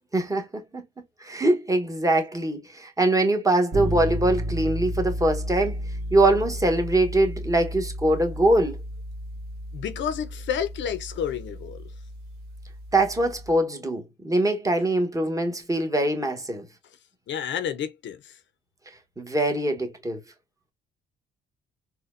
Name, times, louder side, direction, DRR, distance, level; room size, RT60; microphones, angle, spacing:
voice 1, 0.1-0.8 1.2-5.8 6.1-8.8 12.9-16.7 19.2-20.2, right 1 dB, 15° right, 1.1 m, -23 dB
sound 1, 3.7-13.5, equal, 50° right, 1.4 m, -33 dB
voice 2, 9.7-11.8 17.3-18.4, left 8 dB, 65° left, 0.6 m, -30 dB
4.2 x 2.2 x 2.5 m
cardioid pair, 90°, 20 cm